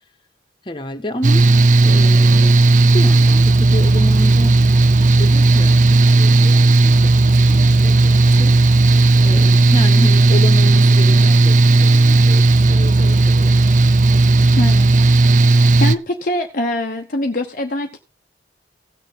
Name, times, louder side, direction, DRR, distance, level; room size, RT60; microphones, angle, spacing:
voice 1, 0.6-1.5 1.8-2.6 2.9-4.6 5.2-8.6 9.2-13.6, left 1 dB, 25° left, 6 dB, 1.5 m, -29 dB
Mechanical fan, 1.2-16.0, right 2 dB, 40° right, 0.5 m, -13 dB
voice 2, 14.5-14.9 15.5-18.0, left 1 dB, 45° left, 3 dB, 0.9 m, -23 dB
17.0 x 6.7 x 3.8 m, 0.28 s
head